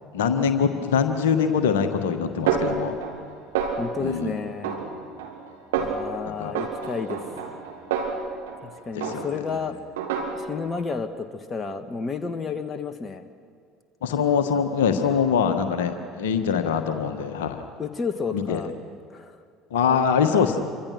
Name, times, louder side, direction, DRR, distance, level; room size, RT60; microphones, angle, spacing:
voice 1, 0.1-3.0 4.0-4.4 6.3-6.5 9.0-9.3 14.0-17.7 18.3-18.6 19.7-20.6, left 7 dB, 70° left, 7 dB, 1.6 m, -23 dB
Snare drum, 2.5-3.3 3.6-4.1 4.6-5.4 5.7-6.1 6.6-8.7 9.0-9.5 10.0-10.7, right 6 dB, 70° right, 2.9 m, -28 dB
voice 2, 3.8-4.8 5.8-7.2 8.6-9.8 10.3-13.2 17.8-18.7 19.1-19.4, left 5 dB, 25° left, 8 dB, 1.6 m, -31 dB
27.5 x 25.0 x 6.1 m, 2.3 s
figure-of-eight pair, 60°, 0 cm